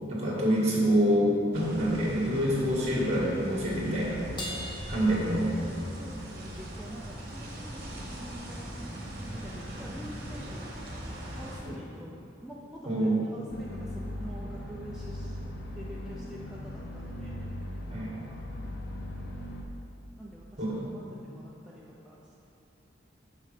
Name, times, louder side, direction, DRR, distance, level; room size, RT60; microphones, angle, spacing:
voice 1, 0.1-4.2 4.9-5.5 11.7-11.8 12.9-13.2 17.9-18.1 20.6-20.8, equal, 35° right, -5 dB, 1.8 m, -26 dB
sound 1, 1.5-11.6, equal, 50° right, 1.3 m, -40 dB
Crash cymbal, 4.4-6.1, left 1 dB, 25° left, 0.9 m, -41 dB
voice 2, 5.0-10.7 11.1-15.4 15.7-17.5 17.9-18.4 20.2-22.5, right 1 dB, 5° right, -6 dB, 0.5 m, -46 dB
sound 2, 13.5-19.6, left 1 dB, 55° left, 0.6 m, -39 dB
6.5 x 5.4 x 4.9 m, 2.7 s
head